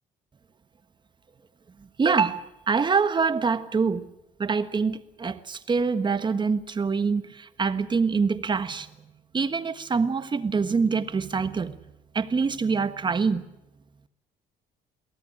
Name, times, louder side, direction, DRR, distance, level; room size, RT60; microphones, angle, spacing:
voice 1, 2.0-4.1 4.4-8.9 9.3-11.8 12.1-13.4, right 5 dB, 25° right, 1.4 m, -25 dB
23.0 x 17.0 x 10.0 m
cardioid pair, 110°, 17 cm